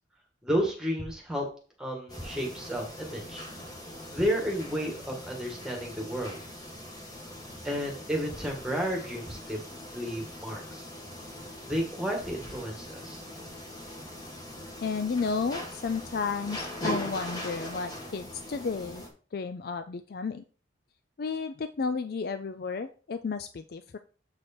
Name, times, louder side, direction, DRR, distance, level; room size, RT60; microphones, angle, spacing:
voice 1, 0.4-1.4 1.8-3.4 4.1-6.4 7.6-9.6 9.9-10.8 11.7-13.2, equal, 5° right, 0 dB, 1.6 m, -32 dB
sound 1, 2.1-19.1, left 1 dB, 20° left, 1.6 m, -41 dB
voice 2, 14.8-19.0 19.3-20.4 21.2-24.0, left 5 dB, 55° left, 10 dB, 0.4 m, -32 dB
7.8 x 4.8 x 4.3 m, 0.39 s
head